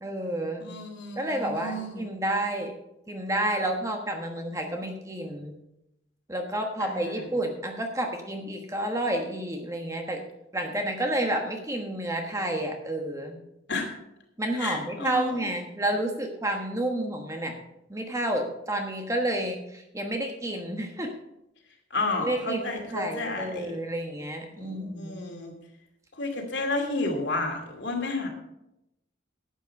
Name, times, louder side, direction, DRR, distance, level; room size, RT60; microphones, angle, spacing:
voice 1, 0.0-0.6 1.2-2.7 3.1-5.5 6.3-10.2 10.5-13.4 14.4-17.5 17.9-21.1 22.2-25.3, right 1 dB, 15° right, 3 dB, 1.2 m, -30 dB
voice 2, 0.6-2.0 6.8-7.2 13.7-13.9 14.6-15.3 21.9-23.7 24.6-25.5 26.2-28.3, left 2 dB, 65° left, 2 dB, 2.5 m, -31 dB
11.5 x 8.5 x 5.3 m, 0.85 s
head